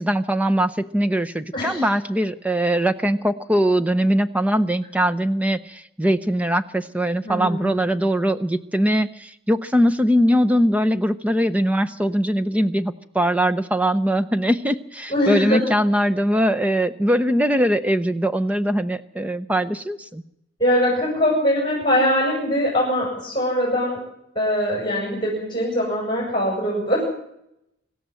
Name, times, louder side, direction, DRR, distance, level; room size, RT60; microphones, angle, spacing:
voice 1, 0.0-20.2, equal, 5° right, 11 dB, 0.8 m, -21 dB
voice 2, 1.5-1.9 7.2-7.8 15.1-15.6 20.6-24.0 24.4-27.0, equal, 20° left, -4 dB, 7.0 m, -22 dB
25.5 x 13.0 x 7.8 m, 0.79 s
head